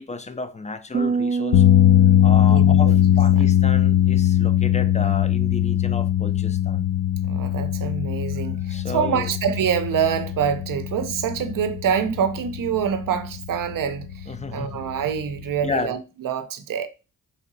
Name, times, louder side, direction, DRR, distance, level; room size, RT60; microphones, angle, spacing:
voice 1, 0.0-1.6 2.2-6.9 8.7-9.3 14.3-14.8 15.6-16.0, left 3 dB, 20° left, 0.4 m, -32 dB
sound 1, 0.9-4.4, right 4 dB, 30° right, 0.5 m, -28 dB
sound 2, 1.5-15.8, left 12 dB, 85° left, 0.5 m, -20 dB
voice 2, 2.5-3.0 3.4-3.5 7.2-14.1 14.5-16.9, right 8 dB, 70° right, 0.6 m, -25 dB
3.4 x 2.8 x 3.9 m
cardioid pair, 65°, 34 cm